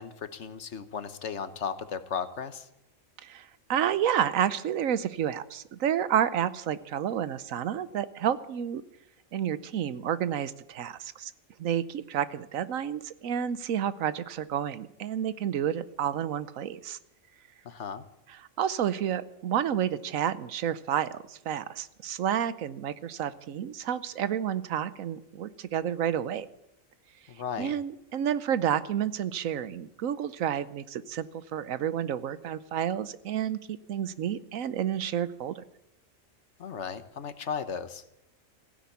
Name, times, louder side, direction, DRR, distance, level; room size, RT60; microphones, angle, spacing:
voice 1, 0.0-2.7 17.6-18.0 27.3-27.8 36.6-38.0, left 6 dB, 60° left, 12 dB, 1.3 m, -35 dB
voice 2, 3.2-8.8 9.3-11.3 11.6-17.0 18.6-26.5 27.6-31.3 31.5-35.6, right 9 dB, 85° right, 15 dB, 1.2 m, -30 dB
16.0 x 10.5 x 8.4 m, 0.82 s
omnidirectional pair, 1.4 m